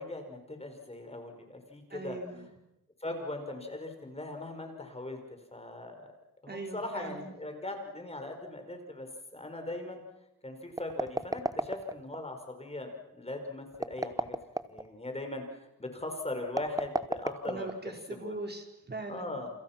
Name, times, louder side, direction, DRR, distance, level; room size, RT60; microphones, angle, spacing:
voice 1, 0.0-2.2 3.0-5.2 5.5-6.1 6.4-9.1 9.3-10.0 10.4-14.4 14.6-17.7 18.2-18.4 19.1-19.5, left 2 dB, 15° left, 5 dB, 5.1 m, -39 dB
voice 2, 1.9-2.5 6.5-7.3 17.5-19.4, right 2 dB, 30° right, 4 dB, 4.9 m, -41 dB
sound 1, 10.7-12.2 13.7-14.9 16.5-18.0, right 2 dB, 10° right, 1.0 m, -33 dB
29.0 x 28.5 x 6.0 m, 0.88 s
wide cardioid pair, 115°, 36 cm